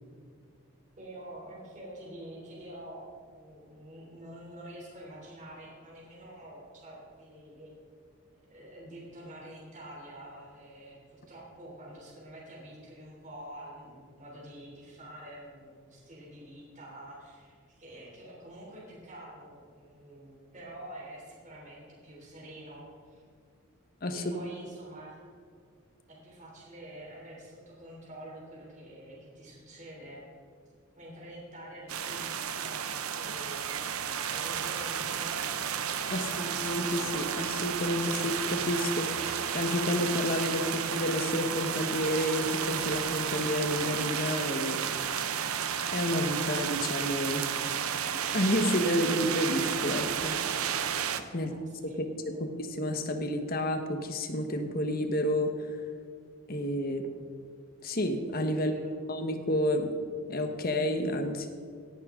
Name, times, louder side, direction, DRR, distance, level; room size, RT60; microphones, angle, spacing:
voice 1, 1.0-7.7 8.5-23.2 24.1-25.2 26.1-30.2 31.0-33.8 34.3-35.7 36.1-36.5 51.4-52.0 52.3-52.4 58.6-58.9, right 1 dB, 35° right, -4 dB, 3.2 m, -47 dB
sound 1, 31.9-51.2, right 8 dB, 80° right, 0.8 m, -32 dB
voice 2, 36.1-45.6 45.9-47.5 48.3-50.4 51.3-51.5 51.8-55.8 56.5-57.1 57.8-58.7 59.1-59.9 60.3-61.5, left 1 dB, 40° left, 6 dB, 1.2 m, -30 dB
17.5 x 11.0 x 3.7 m, 2.1 s
head